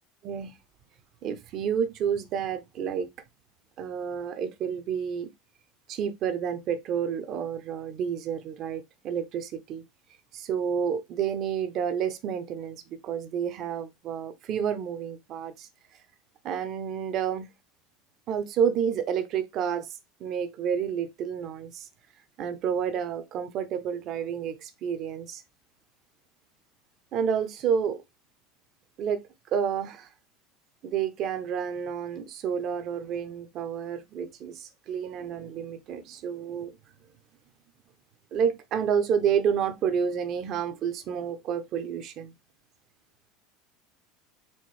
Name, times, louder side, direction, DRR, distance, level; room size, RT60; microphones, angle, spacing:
voice 1, 1.2-3.1 3.8-5.3 5.9-9.8 10.3-12.8 13.0-15.7 16.4-17.5 18.3-19.9 20.2-21.8 22.4-25.4 27.1-28.0 29.0-29.2 29.5-30.1 30.8-36.7 38.3-42.3, right 7 dB, 35° right, 0.5 m, -29 dB
4.2 x 3.9 x 3.1 m
cardioid pair, 175°, 0 cm